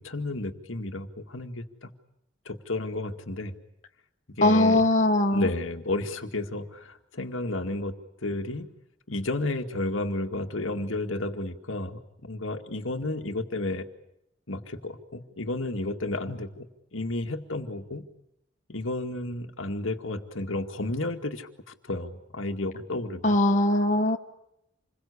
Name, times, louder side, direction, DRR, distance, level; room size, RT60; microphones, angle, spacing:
voice 1, 0.0-1.9 2.5-3.5 4.4-4.8 5.3-7.9 8.2-8.7 9.1-13.9 14.5-16.7 16.9-18.1 18.7-23.4, left 2 dB, 90° left, 5 dB, 2.1 m, -32 dB
voice 2, 4.4-5.5 23.2-24.2, left 1 dB, 40° left, 4 dB, 1.5 m, -21 dB
27.5 x 22.0 x 8.5 m, 0.82 s
head